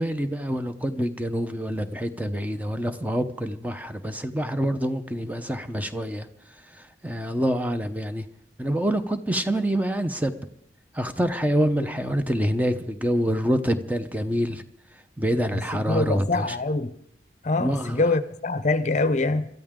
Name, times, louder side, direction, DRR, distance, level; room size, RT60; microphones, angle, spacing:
voice 1, 0.0-6.3 7.0-8.3 8.6-10.3 10.9-14.6 15.2-16.5 17.6-18.0, equal, 10° right, 0.8 m, -26 dB
voice 2, 15.5-16.9 17.4-19.5, left 2 dB, 40° left, 0.7 m, -24 dB
27.0 x 13.5 x 3.8 m
head